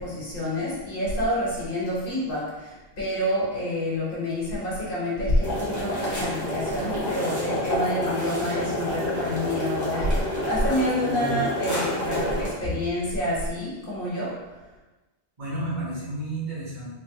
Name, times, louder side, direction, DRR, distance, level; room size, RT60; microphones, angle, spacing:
voice 1, 0.0-10.1 10.4-14.3, left 1 dB, 60° left, -7 dB, 1.6 m, -28 dB
sound 1, 5.4-12.5, equal, 15° left, 1.3 m, -29 dB
voice 2, 11.0-11.4 15.4-16.9, right 1 dB, 45° right, -14 dB, 1.5 m, -31 dB
3.6 x 3.1 x 2.9 m, 1.1 s
omnidirectional pair, 1.1 m